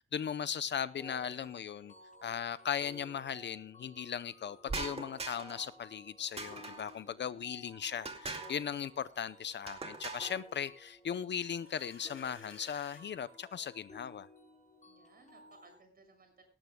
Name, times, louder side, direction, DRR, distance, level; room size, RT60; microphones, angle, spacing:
voice 1, 0.1-1.9 2.2-14.3, left 8 dB, 55° left, 0.7 m, -38 dB
sound 1, 1.0-15.8, left 1 dB, 35° left, 7.1 m, -56 dB
sound 2, 4.7-5.7 6.4-7.0 8.0-8.6 9.7-10.4, right 3 dB, 30° right, 2.3 m, -41 dB
sound 3, 11.5-13.0, left 5 dB, 80° left, 5.9 m, -56 dB
voice 2, 14.8-16.4, right 3 dB, 45° right, 6.7 m, -62 dB
18.0 x 16.0 x 2.3 m
wide cardioid pair, 155°, 21 cm